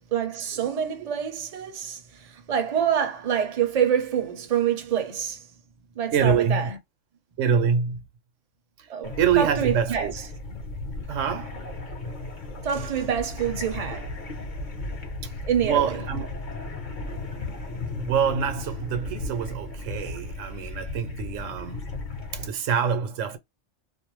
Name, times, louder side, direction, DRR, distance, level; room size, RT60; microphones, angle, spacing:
voice 1, 0.1-5.5 5.9-6.8 8.9-10.1 12.6-14.1 15.4-16.0, right 8 dB, 40° right, 0.6 m, -26 dB
voice 2, 6.1-6.7 7.4-8.0 8.8-8.9 9.2-10.1 11.1-11.6 15.2-15.3 15.6-16.3 17.6-17.7 17.9-21.9 22.3-23.4, right 7 dB, 80° right, 1.0 m, -26 dB
sound 1, 9.0-22.5, left 2 dB, 45° left, 0.8 m, -35 dB
2.5 x 2.1 x 2.9 m
omnidirectional pair, 1.3 m